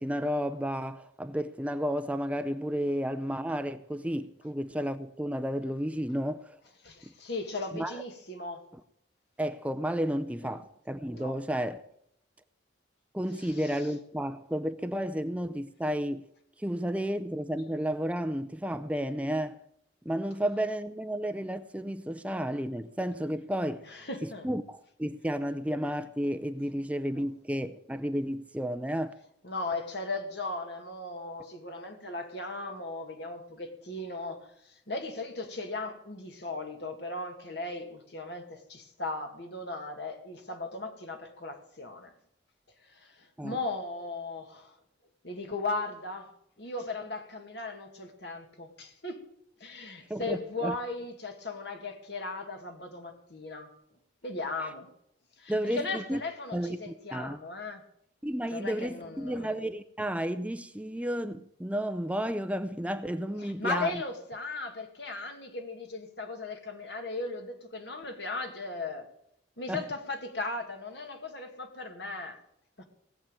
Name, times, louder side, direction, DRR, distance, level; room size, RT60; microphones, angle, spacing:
voice 1, 0.0-6.4 7.0-7.1 7.7-7.9 9.4-11.8 13.1-16.3 16.6-19.6 20.1-23.8 24.4-29.2 43.4-43.6 50.1-50.7 54.6-54.7 55.5-56.2 56.5-57.4 58.2-64.0 69.7-69.8, equal, 5° right, 0.5 m, -32 dB
voice 2, 6.8-8.6 10.4-10.6 11.1-11.4 13.4-13.9 23.8-24.5 27.2-27.3 29.4-42.1 42.8-44.7 45.2-46.3 46.6-49.3 49.6-53.7 54.2-54.9 55.4-57.8 58.5-59.5 63.4-69.1 69.6-72.4 72.8-72.9, left 2 dB, 60° left, 2.2 m, -37 dB
18.0 x 7.5 x 8.9 m
head